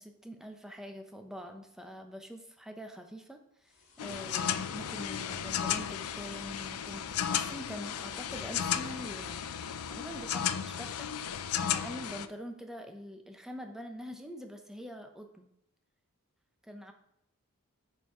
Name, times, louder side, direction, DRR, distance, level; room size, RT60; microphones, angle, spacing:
voice 1, 0.0-9.5 9.7-15.5 16.6-16.9, equal, ahead, 4 dB, 0.8 m, -45 dB
sound 1, 3.6-11.1, left 1 dB, 65° left, 1.4 m, -61 dB
sound 2, 4.0-12.3, left 9 dB, 85° left, 0.5 m, -34 dB
9.7 x 4.5 x 4.9 m, 0.80 s
head